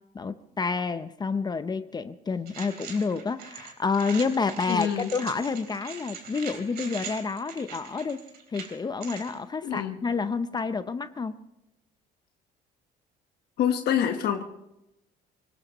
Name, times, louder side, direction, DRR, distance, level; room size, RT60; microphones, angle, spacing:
voice 1, 0.1-8.2 8.5-11.4, left 4 dB, 25° left, 12 dB, 0.6 m, -29 dB
sound 1, 2.5-9.3, right 6 dB, 70° right, 3.5 m, -42 dB
voice 2, 4.7-5.1 9.6-10.0 13.6-14.4, left 9 dB, 75° left, 5 dB, 1.2 m, -26 dB
24.5 x 18.5 x 3.0 m, 0.90 s
cardioid pair, 110°, 17 cm